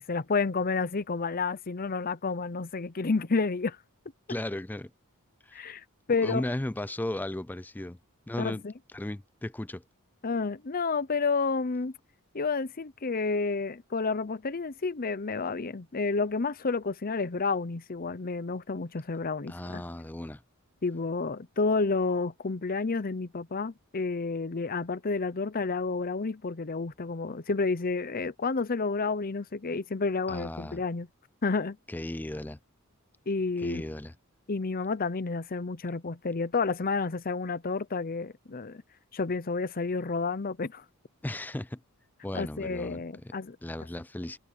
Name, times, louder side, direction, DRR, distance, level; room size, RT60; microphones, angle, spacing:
voice 1, 0.0-3.8 5.5-6.4 8.4-8.7 10.2-11.9 12.3-19.8 20.8-31.1 31.4-31.8 33.3-33.8 34.5-38.8 39.1-40.8 42.3-43.6, left 4 dB, 40° left, 0.7 m, -30 dB
voice 2, 4.3-4.9 5.4-5.8 6.2-8.0 8.3-8.6 8.9-9.8 19.5-20.4 30.3-30.8 31.9-32.6 33.6-34.1 41.2-41.8 42.2-43.3 43.6-44.4, left 1 dB, 10° left, 0.4 m, -35 dB
head